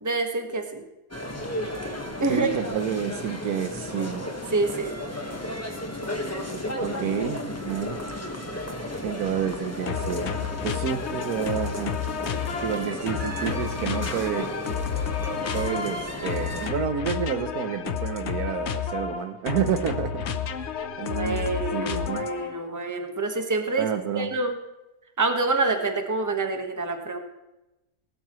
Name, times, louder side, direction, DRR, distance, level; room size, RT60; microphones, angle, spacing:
voice 1, 0.0-0.8 2.2-2.5 4.5-5.0 21.0-23.9 24.1-24.6 25.2-27.2, right 3 dB, 10° right, 4 dB, 1.2 m, -27 dB
sound 1, 1.1-16.7, left 1 dB, 10° left, 1.3 m, -34 dB
voice 2, 2.3-4.3 6.8-8.0 9.0-10.3 10.6-12.0 12.6-14.5 15.5-20.7 21.0-22.3 23.8-24.4, right 8 dB, 75° right, 9 dB, 1.3 m, -29 dB
sound 2, 9.9-22.6, left 7 dB, 55° left, 0.9 m, -31 dB
19.5 x 12.5 x 3.1 m, 0.98 s
omnidirectional pair, 1.7 m